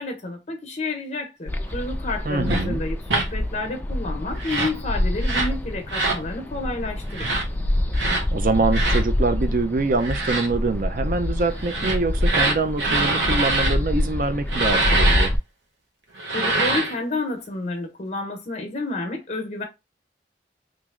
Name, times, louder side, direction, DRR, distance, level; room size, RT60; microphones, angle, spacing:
voice 1, 0.0-7.5 16.3-19.6, left 2 dB, 40° left, 0.9 m, -30 dB
sound 1, 1.5-15.4, left 1 dB, 10° left, 0.3 m, -26 dB
voice 2, 2.2-2.8 8.3-15.3, right 3 dB, 50° right, 0.5 m, -24 dB
sound 2, 2.5-2.6 3.1-3.3 4.4-4.8 5.2-5.5 5.9-6.2 7.1-7.4 7.9-8.2 8.7-9.0 10.0-10.5 11.6-13.8 14.5-15.3 16.2-17.0, right 2 dB, 75° right, 0.9 m, -24 dB
3.1 x 2.6 x 3.6 m
head